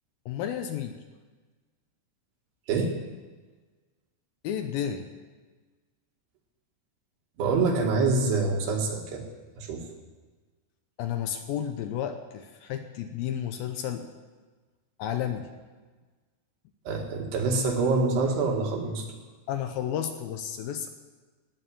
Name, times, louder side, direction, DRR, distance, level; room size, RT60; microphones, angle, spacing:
voice 1, 0.3-1.0 4.4-5.1 11.0-14.1 15.0-15.5 19.5-20.9, left 9 dB, 80° left, 7 dB, 2.2 m, -32 dB
voice 2, 7.4-9.2 9.6-9.9 16.9-19.0, right 3 dB, 70° right, 1 dB, 3.8 m, -26 dB
17.5 x 7.0 x 9.3 m, 1.3 s
omnidirectional pair, 5.1 m